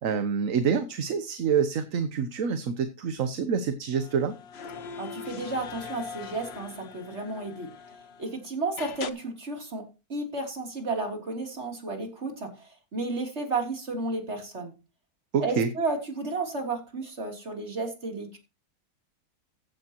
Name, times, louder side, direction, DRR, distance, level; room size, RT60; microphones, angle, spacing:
voice 1, 0.0-4.3 15.3-15.7, right 6 dB, 60° right, 9 dB, 1.3 m, -27 dB
sound 1, 3.9-8.3 8.8-9.1, left 6 dB, 50° left, 1.0 m, -41 dB
voice 2, 5.0-7.7 8.2-14.7 15.4-18.4, right 3 dB, 45° right, 2 dB, 3.5 m, -32 dB
15.0 x 9.8 x 3.0 m, 0.28 s
omnidirectional pair, 1.6 m